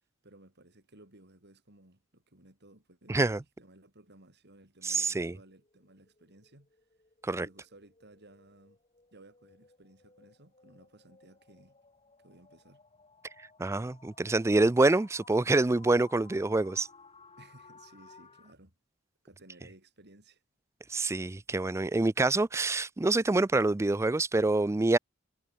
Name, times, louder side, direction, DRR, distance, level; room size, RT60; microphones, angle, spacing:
voice 1, 0.2-6.7 7.3-8.8 9.1-11.8 12.2-12.8 17.4-18.7 19.2-20.4, right 1 dB, 55° right, 6.5 m, -58 dB
voice 2, 3.1-3.4 4.8-5.3 7.2-7.5 13.6-16.9 20.9-25.0, right 2 dB, 15° right, 0.4 m, -26 dB
sound 1, 5.4-18.5, left 4 dB, 30° left, 6.3 m, -59 dB
head